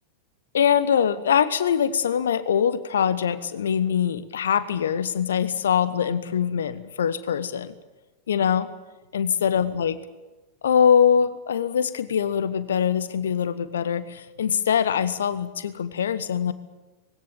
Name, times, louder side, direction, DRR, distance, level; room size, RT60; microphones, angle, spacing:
voice 1, 0.5-7.7 8.3-8.7 9.1-9.9 10.6-16.5, left 8 dB, 65° left, 15 dB, 1.2 m, -23 dB
20.0 x 17.0 x 8.9 m, 1.2 s
figure-of-eight pair, 90°, 0 cm